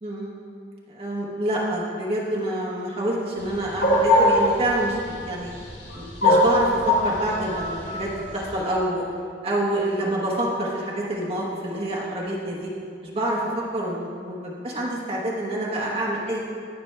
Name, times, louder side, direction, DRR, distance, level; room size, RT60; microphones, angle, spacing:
voice 1, 0.0-0.4 0.9-5.5 5.9-9.0 9.4-12.7 13.0-16.4, right 1 dB, 35° right, -4 dB, 1.1 m, -27 dB
sound 1, 3.4-8.5, left 1 dB, 80° left, 1.8 m, -21 dB
17.0 x 5.9 x 3.3 m, 2.3 s
head